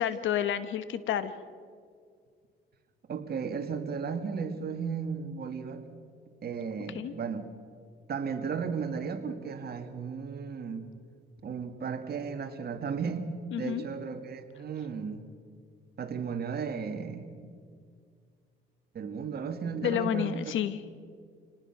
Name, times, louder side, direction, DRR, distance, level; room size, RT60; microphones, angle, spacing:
voice 1, 0.0-1.3 6.9-7.1 13.5-13.9 19.8-21.0, left 10 dB, 75° left, 13 dB, 1.2 m, -30 dB
voice 2, 3.1-5.9 6.4-7.5 8.1-10.9 11.4-15.2 16.0-17.6 18.9-20.5, right 6 dB, 50° right, 6 dB, 2.1 m, -35 dB
26.5 x 19.0 x 6.0 m, 2.1 s
cardioid pair, 90°, 20 cm